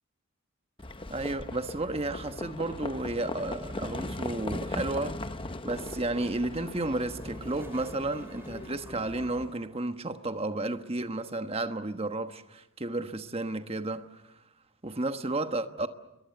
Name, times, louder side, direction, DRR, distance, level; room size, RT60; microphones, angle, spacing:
Livestock farm animals working animals, 0.8-9.4, left 2 dB, 25° left, 0.9 m, -39 dB
voice 1, 1.1-5.3 5.6-14.3 14.8-15.9, right 2 dB, 25° right, 1.2 m, -32 dB
Toilet flush, 6.9-9.9, right 1 dB, 10° right, 3.0 m, -51 dB
28.5 x 22.5 x 8.0 m
head